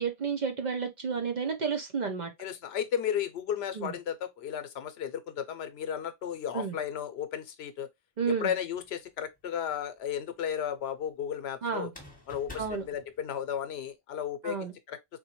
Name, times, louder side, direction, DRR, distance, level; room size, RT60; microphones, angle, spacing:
voice 1, 0.0-2.3 3.8-3.9 6.5-6.8 8.2-8.5 11.6-11.9 12.6-12.8 14.4-14.7, right 6 dB, 50° right, 0.6 m, -31 dB
voice 2, 2.4-7.9 8.3-11.9 12.3-15.0, left 9 dB, 80° left, 0.8 m, -34 dB
sound 1, 8.7-9.4 11.8-13.8, left 3 dB, 10° left, 1.0 m, -49 dB
3.8 x 2.2 x 2.9 m
omnidirectional pair, 1.1 m